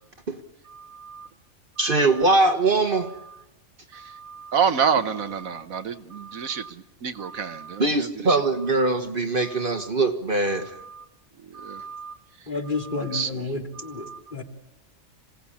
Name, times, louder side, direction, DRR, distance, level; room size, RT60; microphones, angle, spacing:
voice 1, 0.7-1.3 1.8-2.0 3.9-8.4 9.4-9.9 10.6-11.0 11.5-12.1 13.0-13.3 13.8-14.2, right 7 dB, 80° right, 10 dB, 1.5 m, -29 dB
voice 2, 1.8-3.1 7.8-10.7, right 2 dB, 40° right, 7 dB, 1.5 m, -22 dB
voice 3, 12.5-14.4, left 3 dB, 35° left, 2 dB, 2.8 m, -31 dB
27.0 x 18.0 x 8.6 m, 0.98 s
omnidirectional pair, 1.4 m